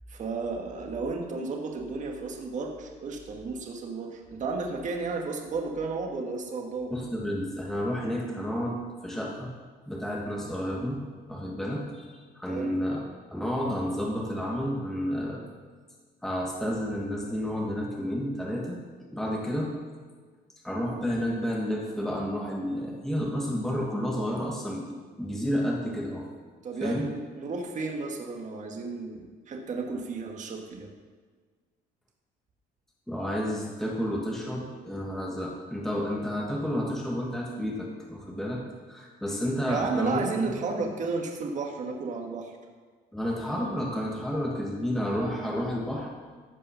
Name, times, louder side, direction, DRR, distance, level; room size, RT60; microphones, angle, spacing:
voice 1, 0.1-6.9 12.5-12.8 26.6-30.9 39.7-42.5, right 4 dB, 45° right, 2 dB, 1.7 m, -33 dB
voice 2, 6.9-9.5 9.9-11.0 11.3-13.0 13.3-15.5 16.2-19.7 20.6-24.9 25.2-26.2 26.8-27.1 33.1-38.6 38.9-40.9 43.1-46.1, equal, ahead, -2 dB, 1.5 m, -31 dB
14.5 x 5.4 x 5.7 m, 1.5 s
cardioid pair, 110°, 17 cm